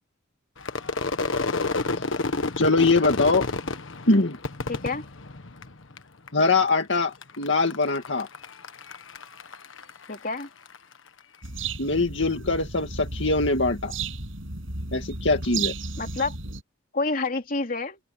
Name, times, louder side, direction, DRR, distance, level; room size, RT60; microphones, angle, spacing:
Crowd / Fireworks, 0.6-6.0 6.3-6.9 7.2-10.8, left 3 dB, 85° left, 1.5 m, -30 dB
voice 1, 2.6-3.5 4.1-4.4 6.3-8.3 11.8-13.9 14.9-15.7, left 3 dB, 65° left, 2.2 m, -22 dB
voice 2, 4.7-5.0 10.1-10.5 16.0-16.3 16.9-18.0, left 3 dB, 45° left, 3.2 m, -28 dB
sound 1, 11.4-16.6, right 4 dB, 85° right, 6.6 m, -33 dB
open air
head